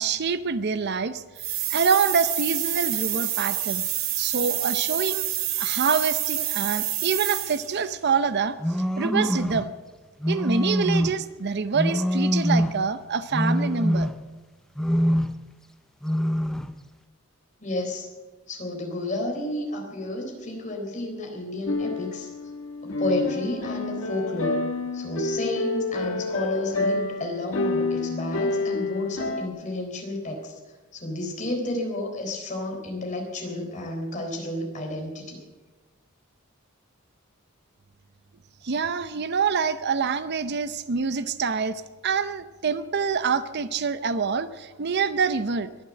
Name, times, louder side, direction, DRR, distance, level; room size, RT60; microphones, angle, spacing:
voice 1, 0.0-3.8 4.2-5.3 5.6-8.6 9.0-9.7 10.3-14.1 38.6-45.7, right 5 dB, 55° right, 13 dB, 0.6 m, -26 dB
sound 1, 1.4-7.8, right 12 dB, 80° right, 1.5 m, -28 dB
sound 2, 8.6-9.7 10.2-11.3 11.7-12.9 13.3-14.4 14.8-15.5 16.0-16.8, equal, 5° left, 0.5 m, -24 dB
voice 2, 17.6-18.1 18.5-22.3 22.8-24.7 24.9-30.6 30.9-35.4, left 1 dB, 35° left, 1 dB, 3.9 m, -31 dB
sound 3, 21.7-29.5, left 3 dB, 80° left, 1.4 m, -28 dB
22.0 x 7.4 x 7.5 m, 1.2 s
head